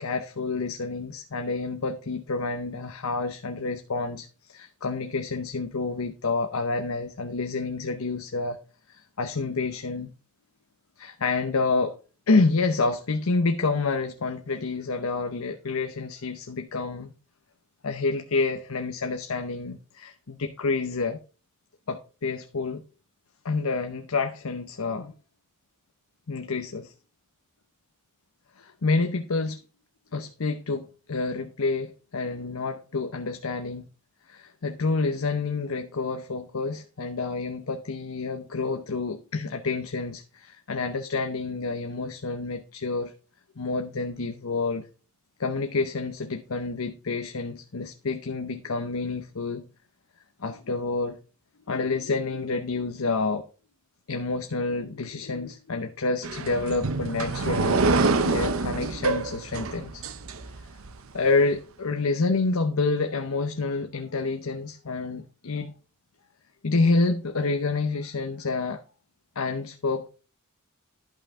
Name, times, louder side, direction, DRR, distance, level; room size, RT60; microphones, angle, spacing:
voice 1, 0.0-8.6 8.9-10.1 11.0-12.0 12.3-17.1 17.8-21.2 21.9-22.8 23.4-25.1 26.3-26.9 28.6-29.6 30.1-33.9 34.3-43.1 43.6-44.9 45.4-49.6 50.4-51.2 51.7-53.4 54.1-60.0 61.1-65.7 66.6-68.8 69.4-70.1, left 3 dB, 85° left, 0.8 m, -28 dB
sound 1, 56.2-60.9, right 3 dB, 75° right, 0.8 m, -26 dB
11.5 x 5.6 x 3.6 m
head